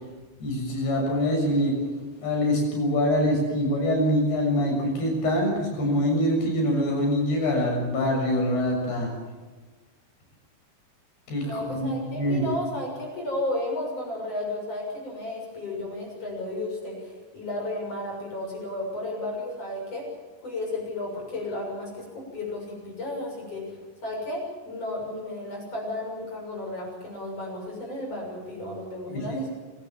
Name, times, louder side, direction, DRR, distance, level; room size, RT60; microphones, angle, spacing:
voice 1, 0.4-1.7 2.2-9.1 11.3-12.4 29.1-29.5, equal, 65° left, 0 dB, 8.9 m, -24 dB
voice 2, 11.4-20.1 20.4-23.8 24.0-29.5, left 1 dB, 35° left, -1 dB, 7.7 m, -33 dB
26.0 x 17.0 x 7.3 m, 1.4 s
omnidirectional pair, 5.1 m